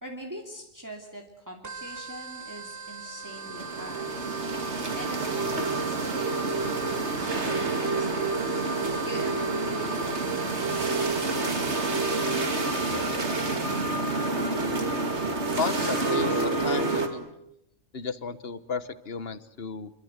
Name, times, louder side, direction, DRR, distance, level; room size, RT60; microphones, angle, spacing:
voice 1, 0.0-4.3 5.0-6.3 6.9-8.5 9.0-13.1, equal, 15° right, 0 dB, 2.8 m, -43 dB
sound 1, 1.6-13.1, right 5 dB, 55° right, 1.4 m, -42 dB
sound 2, 3.3-17.1, right 3 dB, 70° right, 2.8 m, -28 dB
voice 2, 15.6-17.3 17.9-19.9, left 5 dB, 60° left, 14 dB, 1.5 m, -33 dB
27.0 x 24.5 x 8.1 m, 0.81 s
omnidirectional pair, 1.2 m